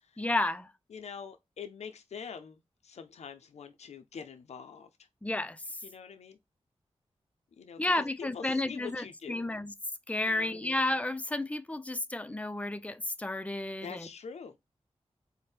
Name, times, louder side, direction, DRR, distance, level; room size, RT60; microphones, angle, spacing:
voice 1, 0.2-0.7 5.2-5.6 7.8-9.7 10.1-14.1, left 2 dB, 10° left, 0.4 m, -32 dB
voice 2, 0.9-5.1 5.8-6.4 7.6-8.0 8.3-9.5 10.3-10.8 13.8-14.6, left 6 dB, 85° left, 0.5 m, -45 dB
4.4 x 2.1 x 3.2 m
wide cardioid pair, 70°, 11 cm